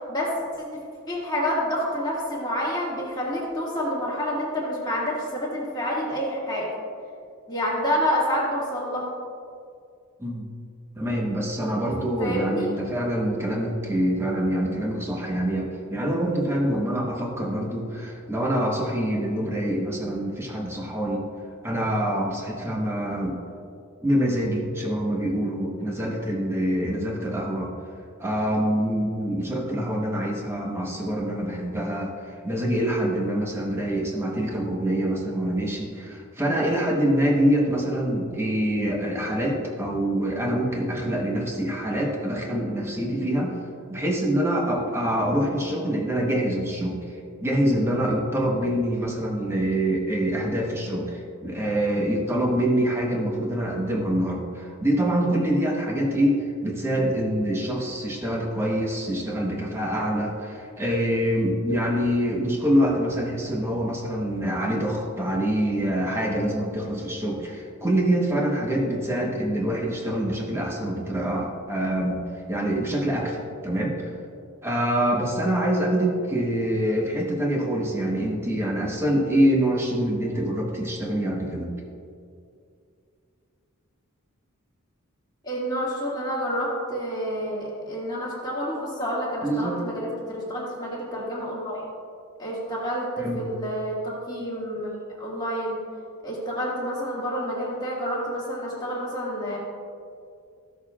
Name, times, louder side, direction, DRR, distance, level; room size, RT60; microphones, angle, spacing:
voice 1, 0.1-0.8 1.1-6.7 7.5-9.1 12.2-12.7 85.4-91.8 92.4-95.8 96.2-99.6, equal, 20° left, -6 dB, 1.8 m, -28 dB
voice 2, 11.0-21.2 21.6-23.4 24.0-27.7 28.2-32.1 32.4-43.6 43.9-74.1 74.6-81.7 89.4-89.8 93.2-93.5, right 1 dB, 10° right, -1 dB, 1.1 m, -25 dB
15.0 x 6.5 x 2.4 m, 2.3 s
head